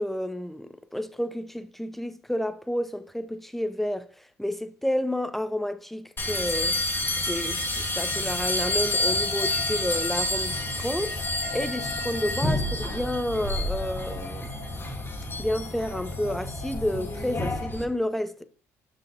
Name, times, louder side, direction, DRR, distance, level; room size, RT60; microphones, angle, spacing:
voice 1, 0.0-4.1 4.4-6.8 7.3-11.1 11.5-14.5 15.4-18.4, left 1 dB, 5° left, 0.5 m, -30 dB
sound 1, 6.2-17.8, left 1 dB, 30° left, 1.5 m, -29 dB
sound 2, 8.1-17.6, left 3 dB, 85° left, 2.2 m, -41 dB
7.5 x 5.8 x 2.5 m
supercardioid pair, 65°, 7 cm